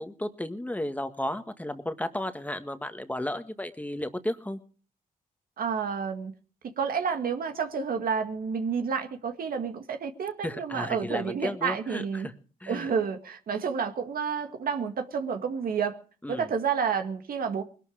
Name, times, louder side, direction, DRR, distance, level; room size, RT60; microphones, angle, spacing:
voice 1, 0.0-4.6 10.4-12.3 12.6-12.9 16.2-16.5, left 1 dB, 10° left, 1.7 m, -33 dB
voice 2, 5.6-6.3 6.6-12.3 12.7-16.0 16.3-17.6, right 6 dB, 70° right, 2.0 m, -30 dB
20.5 x 12.5 x 5.0 m
cardioid pair, 80°, 16 cm